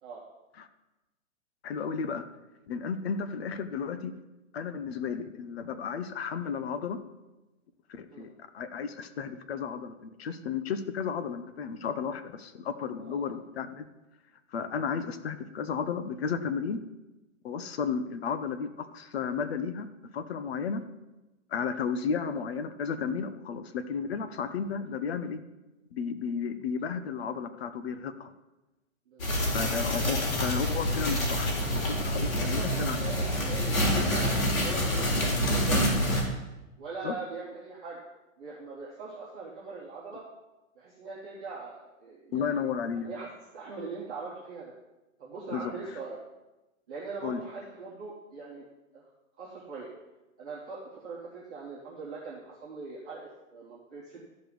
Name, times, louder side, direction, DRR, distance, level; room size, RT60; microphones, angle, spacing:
voice 1, 1.6-2.2 2.7-4.1 4.5-7.0 7.9-13.8 14.5-16.8 17.4-19.9 20.1-20.8 21.5-25.4 25.9-28.3 29.5-33.0 37.0-37.2 42.3-43.1 45.5-45.7 47.2-47.4, left 6 dB, 50° left, 10 dB, 0.9 m, -33 dB
voice 2, 13.0-13.3 29.1-29.3 32.2-34.2 34.6-36.2 36.8-38.0 38.4-40.2 40.8-42.6 43.0-43.3 43.5-44.7 45.2-46.2 46.9-48.6 48.9-49.0 49.4-49.9 50.4-54.2, right 4 dB, 5° right, -11 dB, 0.4 m, -41 dB
sound 1, 29.2-36.2, equal, 75° left, 4.0 m, -27 dB
13.5 x 5.3 x 6.0 m, 1.0 s
hypercardioid pair, 160°, 41 cm